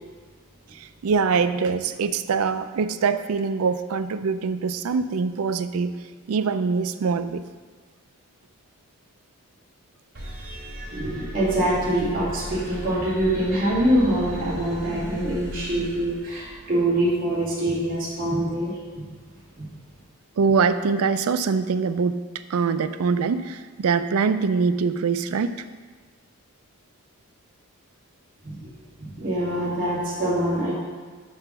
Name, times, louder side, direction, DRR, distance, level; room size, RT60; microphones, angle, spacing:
voice 1, 0.7-6.0 6.3-7.4 20.4-22.2 22.5-25.6, right 5 dB, 75° right, 11 dB, 0.4 m, -23 dB
sound 1, 10.1-16.7, equal, 60° right, 2.6 m, -37 dB
voice 2, 10.9-19.1 19.6-19.7 28.4-28.7 29.0-30.7, right 1 dB, 40° right, -9 dB, 2.1 m, -24 dB
5.6 x 5.6 x 5.9 m, 1.5 s
head